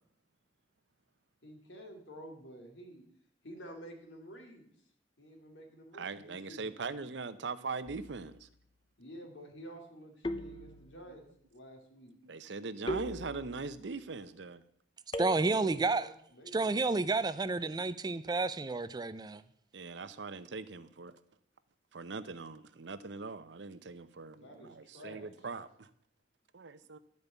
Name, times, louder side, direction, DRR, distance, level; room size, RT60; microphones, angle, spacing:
voice 1, 1.4-3.0 3.4-4.7 5.2-6.9 9.0-11.3 11.5-12.1 15.3-16.8 24.3-25.5, right 1 dB, 80° left, 2.6 m, -50 dB
voice 2, 5.9-8.5 12.2-14.6 19.7-21.1 21.9-25.9 26.5-27.0, right 4 dB, 70° right, 0.7 m, -41 dB
sound 1, 7.9-8.4 10.2-11.2 12.9-13.8 15.1-15.9, equal, 25° left, 0.7 m, -40 dB
voice 3, 15.2-16.0 16.5-19.4, right 3 dB, 20° right, 0.4 m, -30 dB
12.0 x 5.3 x 8.1 m
head